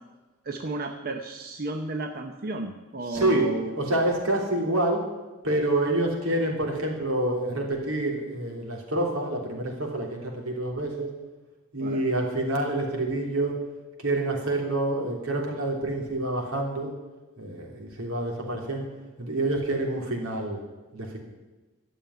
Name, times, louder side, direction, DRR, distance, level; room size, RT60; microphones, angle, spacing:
voice 1, 0.4-3.7 11.8-12.0, right 3 dB, 45° right, 5 dB, 0.8 m, -33 dB
voice 2, 3.1-5.0 5.4-11.1 11.7-13.6 14.0-16.9 17.4-18.9 19.2-20.6 20.9-21.2, right 1 dB, 80° right, 1 dB, 3.2 m, -27 dB
12.5 x 7.1 x 9.8 m, 1.2 s
head